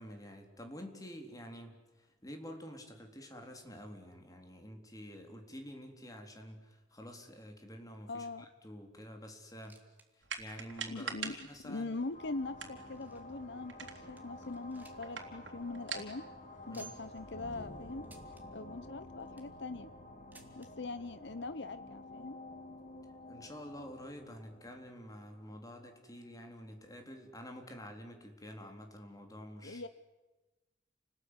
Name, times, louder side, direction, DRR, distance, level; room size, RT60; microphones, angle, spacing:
voice 1, 0.0-9.8 10.2-12.0 16.7-16.9 23.3-29.9, equal, 20° left, 4 dB, 3.8 m, -49 dB
voice 2, 8.1-8.5 10.9-11.4 11.6-16.3 16.7-18.1 18.5-19.9 20.6-22.4 29.6-29.9, left 3 dB, 65° left, 12 dB, 1.0 m, -42 dB
sound 1, 9.6-10.1 10.4-10.5 11.1-11.2 11.9-13.4 13.8-13.9 14.2-15.2 15.5-15.6 15.9-16.0 16.7-17.2 18.0-18.4 19.1-19.6 20.3-20.7 21.7-21.8 22.0-22.1 22.9-23.0, right 4 dB, 10° right, 3.1 m, -57 dB
sound 2, 10.2-17.6, right 6 dB, 80° right, 3.6 m, -47 dB
sound 3, 12.1-26.3, left 1 dB, 45° left, 3.5 m, -51 dB
30.0 x 20.0 x 9.8 m, 1.1 s
head